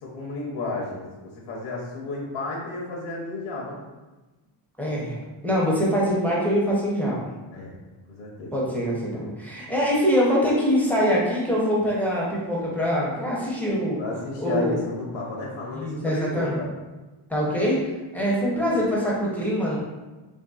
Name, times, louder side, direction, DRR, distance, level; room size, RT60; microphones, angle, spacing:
voice 1, 0.0-3.8 7.5-7.7 8.1-8.5 14.0-16.7 18.5-18.8, left 2 dB, 85° left, -3 dB, 0.7 m, -32 dB
voice 2, 4.8-5.2 5.4-7.3 8.5-14.0 14.4-14.8 15.7-16.6 17.3-17.8 18.1-19.8, equal, 5° left, -6 dB, 0.5 m, -24 dB
3.4 x 2.6 x 2.3 m, 1.2 s
wide cardioid pair, 155°, 48 cm